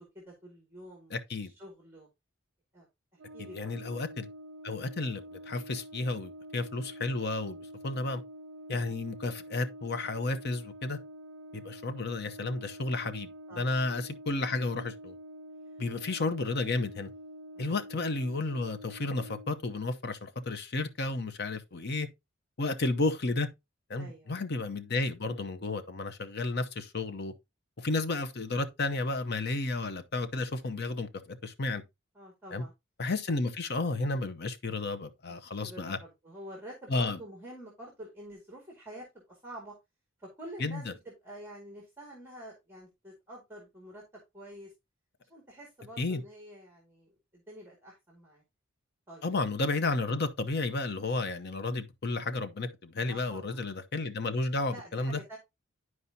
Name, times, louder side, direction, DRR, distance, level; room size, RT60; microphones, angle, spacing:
voice 1, 0.0-1.2 1.4-2.1 2.7-2.9 3.3-3.8 13.5-13.9 15.6-15.8 17.6-17.7 24.0-24.4 32.1-32.7 35.4-39.7 40.2-44.7 45.3-48.4 49.1-49.3 53.1-53.7 54.7-55.4, right 1 dB, 10° right, 1.9 m, -48 dB
voice 2, 1.1-1.5 3.5-4.3 4.6-7.6 7.8-8.2 8.7-11.0 11.5-13.3 13.6-15.1 15.8-17.1 17.6-22.1 22.6-23.5 23.9-27.3 27.8-31.8 32.5-32.6 33.0-36.0 36.9-37.2 40.6-40.9 46.0-46.2 49.2-55.2, left 3 dB, 50° left, 0.8 m, -32 dB
Brass instrument, 3.2-19.6, equal, 70° right, 0.4 m, -47 dB
11.0 x 4.7 x 2.7 m
head